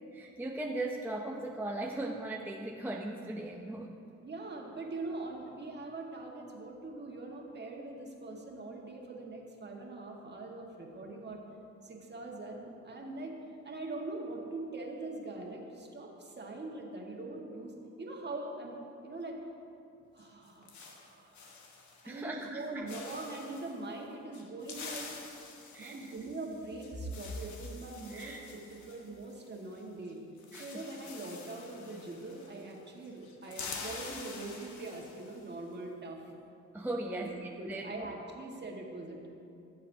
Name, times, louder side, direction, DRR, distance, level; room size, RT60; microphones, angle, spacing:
voice 1, 0.1-3.9 22.1-22.9 25.7-26.1 28.1-28.5 30.5-30.8 36.7-37.3 37.7-38.1, right 2 dB, 5° right, 0 dB, 0.5 m, -38 dB
voice 2, 4.2-11.4 11.8-13.3 13.6-18.8 19.0-19.4 20.1-21.5 22.0-25.1 25.8-28.4 28.7-30.2 30.5-36.3 37.0-37.3 37.6-39.3, right 2 dB, 35° right, 0 dB, 1.6 m, -42 dB
sound 1, 20.2-22.1 22.4-22.6 22.9-23.7 24.3-29.8 30.1-30.2 30.4-32.8 33.0-35.5, left 4 dB, 70° left, 1.3 m, -47 dB
16.0 x 7.3 x 2.7 m, 2.7 s
cardioid pair, 90°, 30 cm